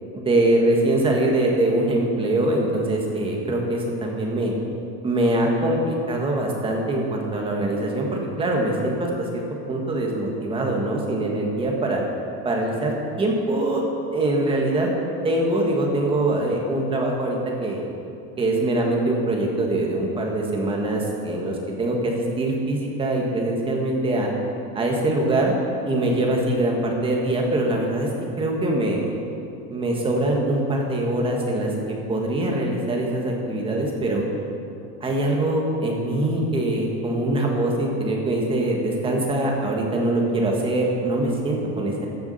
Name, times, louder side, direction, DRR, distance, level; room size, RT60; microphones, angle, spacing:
voice 1, 0.1-4.5 5.0-9.4 9.7-12.0 12.4-13.8 14.1-14.9 15.2-17.8 18.4-24.3 24.7-25.5 25.8-28.1 28.4-29.1 29.7-34.2 35.0-42.1, right 1 dB, 15° right, 0 dB, 1.6 m, -23 dB
14.5 x 7.2 x 5.6 m, 2.7 s
cardioid pair, 165°, 31 cm